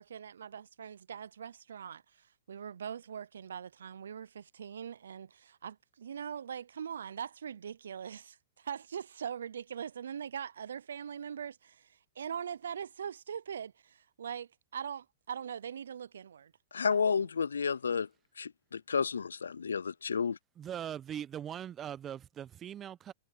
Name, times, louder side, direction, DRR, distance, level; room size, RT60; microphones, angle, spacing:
voice 1, 0.0-16.5 16.9-17.0, right 8 dB, 75° right, 0.6 m, -42 dB
voice 2, 16.7-18.1 18.4-20.4, left 6 dB, 85° left, 0.4 m, -31 dB
voice 3, 20.6-23.1, right 10 dB, 25° right, 1.1 m, -41 dB
hypercardioid pair, 110°, 0 cm